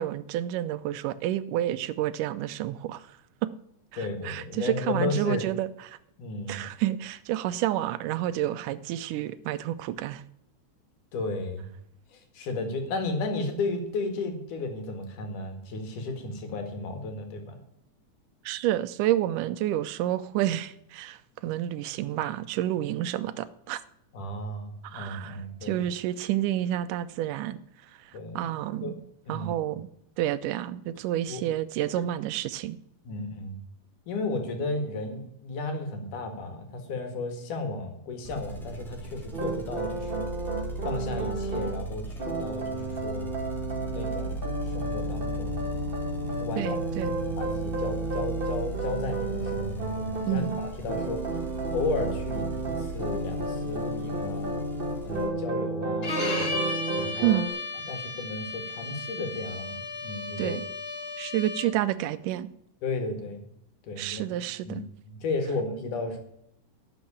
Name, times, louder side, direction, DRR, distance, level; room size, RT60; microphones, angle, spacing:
voice 1, 0.0-3.0 3.9-6.0 6.5-10.2 18.5-21.2 21.4-23.8 24.8-27.6 28.4-28.9 29.3-29.9 30.2-32.8 46.6-47.1 50.3-50.6 57.2-57.5 60.4-60.7 61.2-62.5 64.0-64.8, right 13 dB, 85° right, 14 dB, 2.3 m, -29 dB
voice 2, 4.0-5.5 6.2-6.7 11.1-11.7 12.1-17.6 24.1-25.8 28.1-28.4 28.8-29.0 29.3-29.7 31.3-31.5 32.0-32.1 33.1-33.6 34.1-40.3 40.8-43.3 43.9-45.7 46.3-46.8 47.0-51.2 51.7-54.5 55.0-56.7 56.9-57.2 57.9-60.6 62.8-63.5 63.8-64.4 64.7-66.2, left 3 dB, 75° left, 5 dB, 3.6 m, -34 dB
sound 1, 38.2-55.3, right 2 dB, ahead, 1.7 m, -37 dB
sound 2, 39.3-41.7 42.2-57.5, right 2 dB, 25° right, 1.4 m, -32 dB
Bowed string instrument, 56.0-61.9, left 3 dB, 25° left, 1.7 m, -34 dB
11.5 x 6.8 x 8.6 m, 0.77 s
omnidirectional pair, 3.6 m